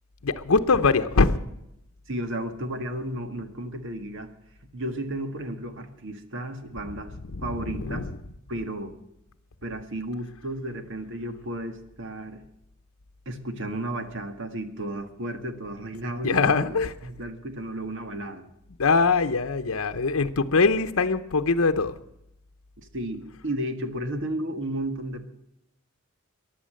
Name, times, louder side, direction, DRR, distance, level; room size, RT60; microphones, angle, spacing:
voice 1, 0.2-1.4 7.3-8.1 16.2-16.9 18.8-21.9, left 4 dB, 75° left, 7 dB, 0.8 m, -22 dB
voice 2, 2.1-4.3 4.7-7.1 7.4-8.1 8.5-8.9 9.6-12.4 13.3-16.7 17.0-18.5 22.8-25.3, right 1 dB, 60° right, 8 dB, 1.8 m, -33 dB
15.0 x 11.0 x 7.6 m, 0.82 s
head